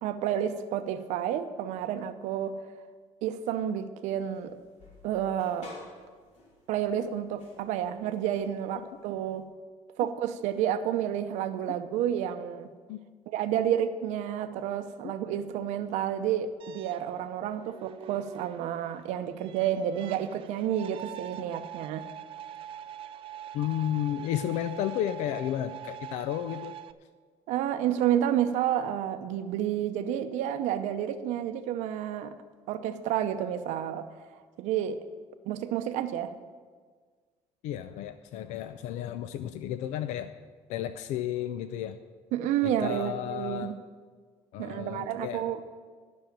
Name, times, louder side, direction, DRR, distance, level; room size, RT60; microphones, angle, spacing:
voice 1, 0.0-2.6 3.2-4.6 5.0-5.7 6.7-9.5 10.0-12.7 13.3-22.1 27.5-32.3 32.7-34.1 34.6-35.0 35.5-36.3 42.3-43.8 44.6-45.6, right 10 dB, 80° right, 8 dB, 0.7 m, -30 dB
sound 1, 4.2-9.4, left 2 dB, 65° left, 2.9 m, -53 dB
sound 2, 16.6-26.9, right 10 dB, 50° right, 0.4 m, -44 dB
voice 2, 23.5-26.7 37.6-40.3 40.7-42.0 42.6-43.7 44.5-45.6, left 11 dB, 85° left, 11 dB, 0.5 m, -32 dB
11.5 x 6.3 x 8.9 m, 1.5 s
cardioid pair, 155°, 12 cm